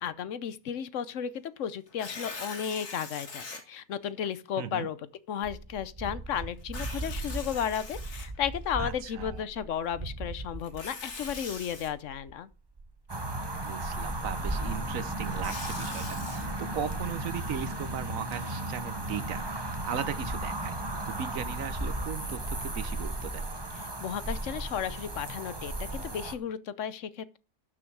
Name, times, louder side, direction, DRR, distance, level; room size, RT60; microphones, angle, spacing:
voice 1, 0.0-5.0 5.3-12.5 23.8-27.4, left 9 dB, 60° left, 1.0 m, -34 dB
Tearing, 1.9-3.6 4.3-4.4 6.6-8.7 10.6-11.9 15.0-16.4, left 3 dB, 80° left, 2.8 m, -42 dB
voice 2, 4.6-4.9 8.8-9.5 13.6-19.4 19.8-20.7 21.1-23.5, right 8 dB, 65° right, 1.1 m, -37 dB
sound 1, 5.4-18.2 18.7-18.8 19.8-21.3 22.2-22.3 22.7-23.1 24.1-24.2, right 2 dB, 35° right, 0.4 m, -42 dB
sound 2, 13.1-26.3, right 1 dB, 20° right, 1.0 m, -35 dB
12.0 x 6.3 x 4.6 m
omnidirectional pair, 1.6 m